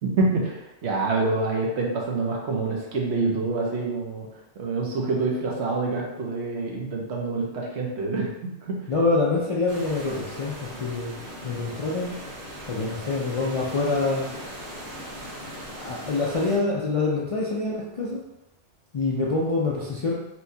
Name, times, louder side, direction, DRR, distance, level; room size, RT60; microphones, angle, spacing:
voice 1, 0.0-4.3 4.6-8.8, right 3 dB, 70° right, -1 dB, 1.0 m, -26 dB
voice 2, 8.9-11.1 11.4-12.1 12.7-14.3 15.8-18.2 18.9-20.1, left 3 dB, 60° left, -5 dB, 0.3 m, -25 dB
sound 1, 9.7-16.6, equal, 45° right, 0.9 m, -39 dB
4.4 x 2.2 x 2.7 m, 0.92 s
omnidirectional pair, 1.2 m